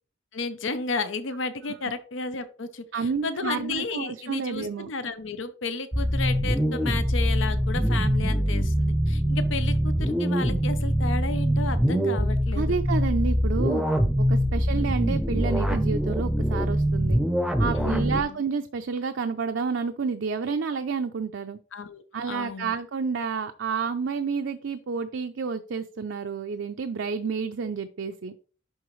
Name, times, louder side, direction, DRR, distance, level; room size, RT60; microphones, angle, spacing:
voice 1, 0.3-12.8 14.5-14.6 17.8-18.4 21.7-22.7, left 4 dB, 85° left, 12 dB, 0.7 m, -33 dB
voice 2, 2.9-4.9 12.5-13.8 14.2-17.2 17.6-21.6 22.1-28.3, right 5 dB, 75° right, 7 dB, 0.5 m, -30 dB
sound 1, 5.9-18.2, equal, ahead, 0.6 m, -24 dB
11.0 x 3.8 x 3.1 m, 0.39 s
head